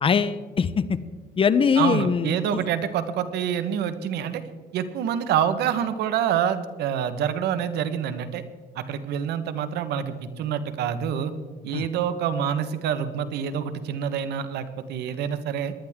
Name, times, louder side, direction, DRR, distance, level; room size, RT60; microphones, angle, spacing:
voice 1, 0.0-1.0 1.4-2.6 11.7-11.8, left 6 dB, 30° left, 14 dB, 0.7 m, -22 dB
voice 2, 1.7-4.4 4.7-8.4 8.7-11.3 11.6-15.7, right 8 dB, 75° right, 11 dB, 1.2 m, -27 dB
19.5 x 11.5 x 3.6 m, 1.5 s
cardioid pair, 110°, 17 cm